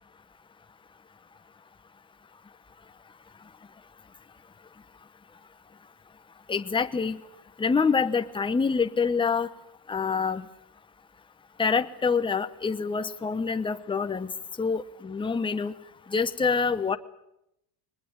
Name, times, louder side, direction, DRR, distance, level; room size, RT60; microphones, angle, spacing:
voice 1, 6.5-7.2 7.6-9.5 9.9-10.4 11.6-14.3 14.6-15.7 16.1-17.0, left 5 dB, 10° left, 8 dB, 1.0 m, -26 dB
22.5 x 20.5 x 8.9 m, 0.82 s
supercardioid pair, 105°, 48 cm